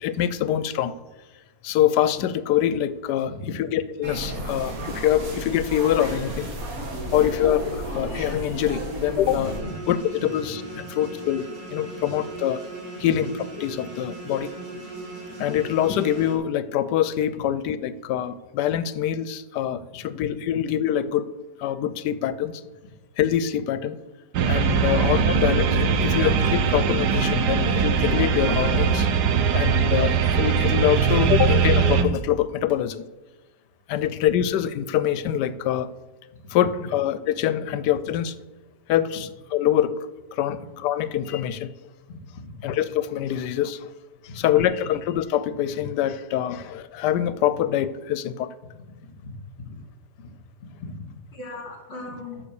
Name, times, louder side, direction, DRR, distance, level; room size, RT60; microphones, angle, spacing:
voice 1, 0.0-0.9 1.6-6.5 7.1-9.5 9.9-10.6 10.9-12.6 13.0-13.3 13.6-14.5 15.4-21.3 21.6-22.6 23.2-24.0 24.5-29.1 29.5-33.0 33.9-35.9 36.5-38.3 38.9-40.1 40.3-41.7 42.6-43.9 44.3-48.5, left 11 dB, 80° left, 15 dB, 1.2 m, -24 dB
voice 2, 3.3-3.6 4.3-4.4 7.0-7.1 10.2-10.3 13.0-13.1 24.8-24.9 42.1-42.4 49.0-49.1 49.6-49.8 50.6-50.9 51.3-52.4, left 3 dB, 40° left, 0 dB, 3.0 m, -38 dB
sound 1, 4.0-9.6, right 1 dB, 60° right, 1.9 m, -33 dB
sound 2, 9.4-16.3, right 2 dB, 30° right, 2.7 m, -38 dB
sound 3, 24.3-32.0, right 6 dB, 80° right, 1.3 m, -21 dB
10.0 x 5.5 x 7.0 m, 1.2 s
omnidirectional pair, 1.8 m